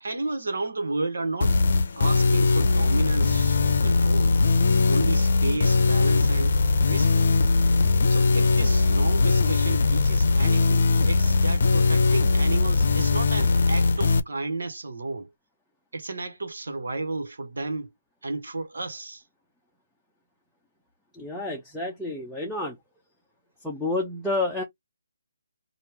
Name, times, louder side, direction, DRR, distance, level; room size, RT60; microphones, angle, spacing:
voice 1, 0.0-1.6 2.0-4.4 4.9-7.3 8.1-15.3 15.9-17.9 18.2-19.2, right 3 dB, 75° right, 1.4 m, -32 dB
sound 1, 1.4-14.2, left 3 dB, 55° left, 0.6 m, -20 dB
voice 2, 21.1-22.8 23.6-24.6, left 2 dB, ahead, 0.7 m, -29 dB
3.3 x 2.6 x 4.4 m
hypercardioid pair, 160°, 0 cm